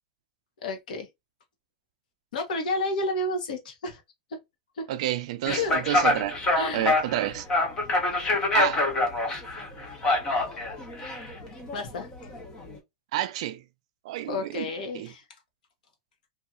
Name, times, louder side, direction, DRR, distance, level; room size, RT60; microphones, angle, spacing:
voice 1, 0.6-1.1 2.3-4.0 4.3-4.4 4.8-4.9 5.5-5.8 6.6-6.9 11.7-12.1 14.2-15.2, left 2 dB, 80° left, 1.0 m, -31 dB
voice 2, 4.9-6.4 6.7-7.5 8.5-8.9 13.1-13.6 14.0-14.7 14.9-15.1, right 13 dB, 50° right, 0.3 m, -29 dB
sound 1, 5.5-12.8, left 2 dB, 15° left, 0.5 m, -26 dB
2.8 x 2.4 x 2.5 m
supercardioid pair, 180°, 4 cm